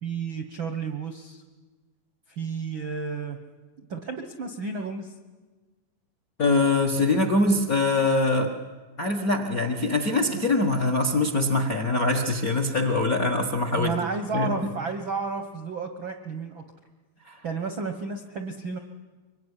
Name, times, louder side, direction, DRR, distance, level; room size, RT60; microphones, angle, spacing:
voice 1, 0.0-1.4 2.3-3.4 3.9-5.1 13.7-16.6 17.4-18.8, right 5 dB, 65° right, 6 dB, 1.2 m, -32 dB
voice 2, 6.4-8.5 9.0-13.9 14.3-14.5 17.2-17.4, left 2 dB, 50° left, 4 dB, 1.0 m, -23 dB
24.5 x 22.5 x 9.9 m, 1.3 s
omnidirectional pair, 4.1 m